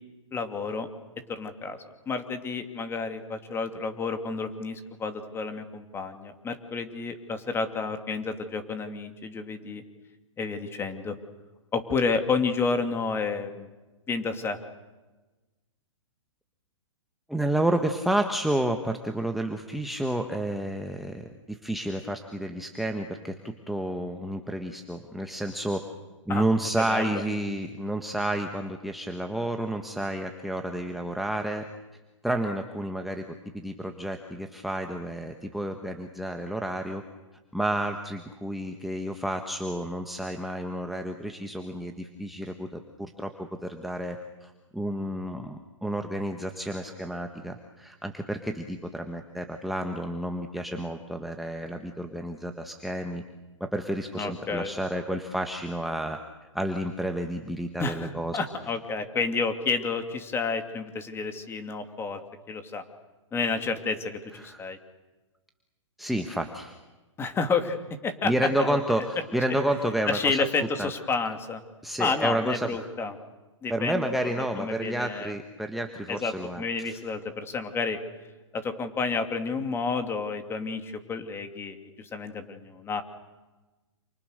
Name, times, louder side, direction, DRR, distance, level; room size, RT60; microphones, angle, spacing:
voice 1, 0.3-0.9 1.3-1.8 2.1-9.8 10.4-11.1 11.7-13.7 14.1-14.6 26.3-26.4 26.8-27.2 54.2-54.7 57.8-62.2 62.5-62.8 63.3-64.8 67.2-67.8 68.0-68.3 68.6-68.8 70.1-71.6 72.0-73.1 73.6-75.3 76.1-78.0 78.5-83.0, left 4 dB, 15° left, 7 dB, 2.8 m, -30 dB
voice 2, 17.3-25.8 26.2-31.7 32.2-33.2 33.5-37.0 37.5-53.2 53.6-56.2 56.5-58.4 64.4-64.6 66.0-66.7 68.2-70.4 70.8-70.9 71.8-72.7 73.7-77.0, right 1 dB, ahead, 5 dB, 1.5 m, -30 dB
29.0 x 28.5 x 6.7 m, 1.2 s
hypercardioid pair, 135°, 16 cm